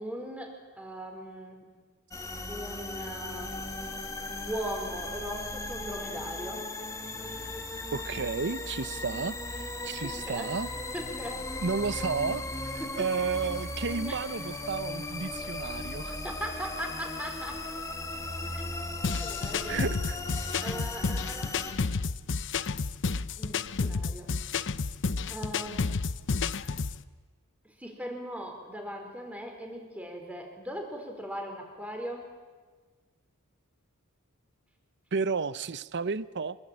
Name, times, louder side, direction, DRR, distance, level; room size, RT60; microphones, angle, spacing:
voice 1, 0.0-1.6 2.5-3.6 4.3-6.6 7.3-7.4 9.8-10.5 10.9-11.5 12.8-13.0 14.1-14.2 16.2-17.6 18.5-18.6 19.2-19.8 20.6-21.6 23.4-24.3 25.3-26.0 27.6-32.3, equal, 5° right, 3 dB, 4.2 m, -39 dB
sound 1, 2.1-21.7, left 2 dB, 15° left, 2.1 m, -37 dB
voice 2, 7.9-10.7 11.6-16.2 19.7-20.2 35.1-36.6, right 5 dB, 55° right, 16 dB, 0.7 m, -32 dB
sound 2, 19.0-27.0, left 4 dB, 60° left, 0.7 m, -31 dB
25.0 x 21.5 x 8.8 m, 1.4 s
head